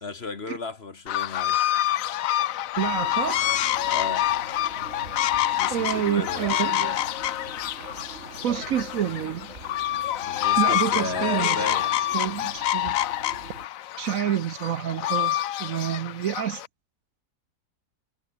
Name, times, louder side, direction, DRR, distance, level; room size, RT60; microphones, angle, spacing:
voice 1, 0.0-1.6 3.9-4.3 5.6-6.5 10.3-11.9, left 4 dB, 40° left, 1.7 m, -34 dB
sound 1, 1.1-16.7, left 13 dB, 65° left, 1.0 m, -27 dB
sound 2, 2.7-13.7, right 2 dB, 45° right, 4.9 m, -44 dB
voice 2, 2.8-3.4 5.7-7.0 8.4-9.5 10.6-11.8 12.1-13.0 14.0-16.6, right 10 dB, 60° right, 1.1 m, -28 dB
omnidirectional pair, 1.7 m